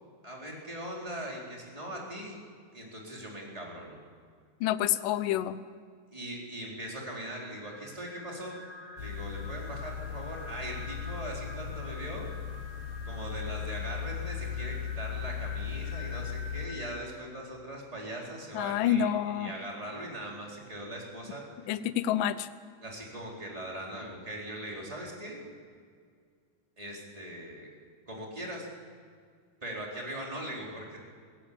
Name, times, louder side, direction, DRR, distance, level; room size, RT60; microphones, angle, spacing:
voice 1, 0.2-2.3 2.7-4.0 6.1-8.6 9.0-12.3 13.0-21.7 22.8-25.4 26.8-27.7 28.1-28.7 29.6-31.0, right 1 dB, 10° right, -2 dB, 3.8 m, -40 dB
voice 2, 4.6-5.6 18.5-19.5 21.7-22.5, left 10 dB, 75° left, 13 dB, 2.1 m, -28 dB
sound 1, 7.0-17.0, left 2 dB, 5° left, 4.0 m, -48 dB
sound 2, 9.0-16.7, left 8 dB, 60° left, 2.1 m, -37 dB
23.0 x 16.5 x 8.7 m, 2.1 s
omnidirectional pair, 4.6 m